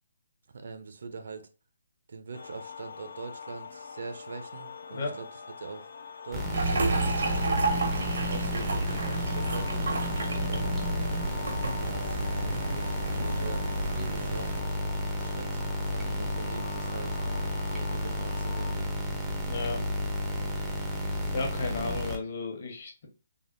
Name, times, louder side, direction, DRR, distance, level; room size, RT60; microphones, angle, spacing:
voice 1, 0.5-1.5 2.1-5.3 5.6-5.9 6.2-7.6 8.3-10.1 10.4-10.9 11.8-14.5 15.2-17.2 17.7-18.9, right 4 dB, 65° right, 8 dB, 0.5 m, -42 dB
sound 1, 2.3-18.7, left 6 dB, 60° left, 0.3 m, -43 dB
sound 2, 6.3-22.2, equal, 5° right, 0.4 m, -32 dB
sound 3, 6.5-14.6, right 3 dB, 85° right, 0.8 m, -32 dB
voice 2, 19.5-19.8 21.3-23.1, left 3 dB, 45° left, 2 dB, 0.9 m, -34 dB
3.4 x 2.1 x 2.5 m, 0.33 s
hypercardioid pair, 170°, 0 cm